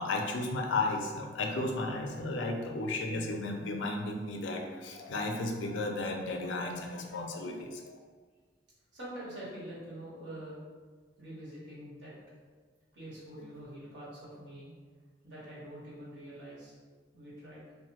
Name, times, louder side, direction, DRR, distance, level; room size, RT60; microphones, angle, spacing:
voice 1, 0.0-8.0 13.3-13.4, left 2 dB, 85° left, 2 dB, 0.4 m, -34 dB
voice 2, 8.9-10.6 11.2-12.1 12.9-14.7 15.2-16.7 17.1-17.6, right 1 dB, 75° right, -8 dB, 1.2 m, -45 dB
2.7 x 2.1 x 2.9 m, 1.5 s
head